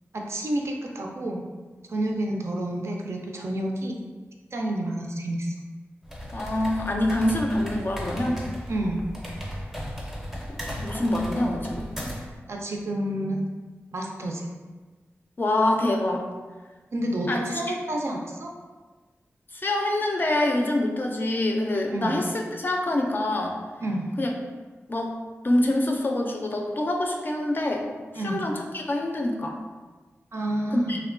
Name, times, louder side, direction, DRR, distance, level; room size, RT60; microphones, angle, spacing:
voice 1, 0.1-1.4 1.9-4.0 4.5-5.6 8.7-9.0 12.5-13.4 13.9-14.5 16.9-18.5 21.9-22.2 23.8-24.1 28.1-28.4 30.3-31.0, right 1 dB, 65° right, 0 dB, 0.4 m, -29 dB
sound 1, 6.0-12.4, equal, 5° right, 0.5 m, -35 dB
voice 2, 6.3-8.4 10.8-11.9 15.4-16.3 17.3-17.4 17.7-17.8 19.5-23.6 24.2-24.3 24.9-25.1 25.4-27.8 28.1-29.6 30.7-31.0, left 1 dB, 45° left, 1 dB, 0.4 m, -25 dB
2.8 x 2.1 x 2.5 m, 1.3 s
wide cardioid pair, 65°, 5 cm